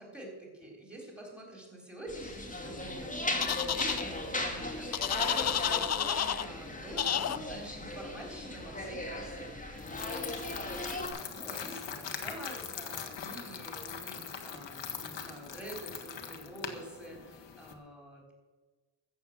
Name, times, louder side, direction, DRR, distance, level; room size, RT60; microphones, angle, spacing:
voice 1, 0.0-9.5 10.9-18.3, right 1 dB, ahead, 0 dB, 3.8 m, -47 dB
sound 1, 2.1-11.1, left 1 dB, 15° left, 2.1 m, -37 dB
sound 2, 3.4-4.0 4.9-6.4 7.0-7.4, left 9 dB, 35° left, 0.4 m, -30 dB
sound 3, 9.8-17.7, left 7 dB, 65° left, 1.6 m, -41 dB
14.5 x 7.7 x 7.3 m, 1.3 s
wide cardioid pair, 135°, 46 cm